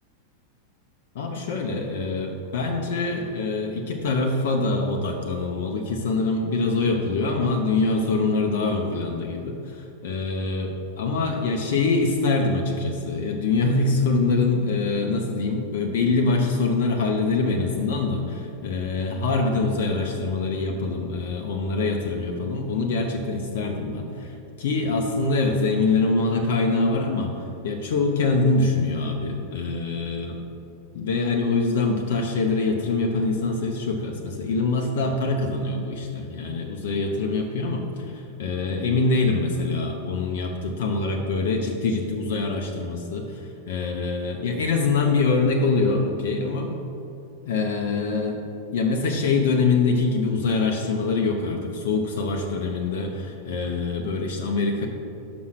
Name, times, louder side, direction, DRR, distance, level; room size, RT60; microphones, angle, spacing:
voice 1, 1.1-30.4 30.9-46.7 47.4-48.4 48.7-54.9, left 3 dB, 55° left, 2 dB, 0.7 m, -24 dB
6.1 x 5.5 x 6.2 m, 2.7 s
figure-of-eight pair, 90°, 0 cm